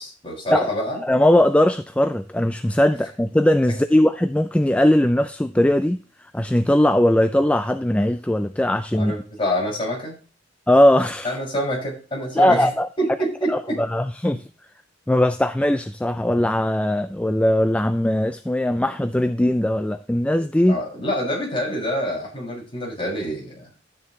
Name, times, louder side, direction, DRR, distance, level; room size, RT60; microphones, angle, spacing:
voice 1, 0.0-1.0 8.9-10.2 11.2-13.8 14.3-14.4 20.7-23.7, equal, 30° left, 6.4 m, -27 dB
voice 2, 1.0-6.0 6.3-9.1 10.7-11.3 12.4-12.9 13.5-14.4 15.1-20.8, left 1 dB, 5° left, 0.4 m, -19 dB
12.5 x 9.6 x 3.2 m
head